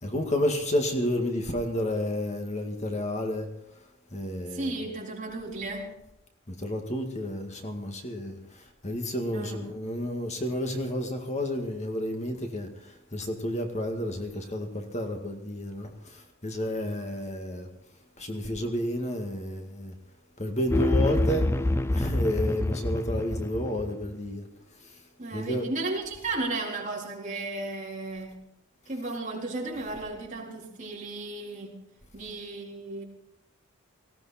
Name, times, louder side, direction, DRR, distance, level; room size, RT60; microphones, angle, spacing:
voice 1, 0.0-3.5 4.1-4.7 6.5-8.4 8.8-12.7 13.1-17.7 18.2-19.9 20.4-21.5 21.9-24.5 25.3-25.6, left 1 dB, 35° left, 4 dB, 2.0 m, -31 dB
voice 2, 4.4-5.9 9.3-9.8 25.2-28.5 28.9-31.8 32.1-33.0, right 2 dB, 40° right, -2 dB, 4.1 m, -34 dB
sound 1, 20.7-24.1, left 1 dB, 15° left, 0.5 m, -26 dB
19.0 x 16.5 x 4.3 m, 0.83 s
head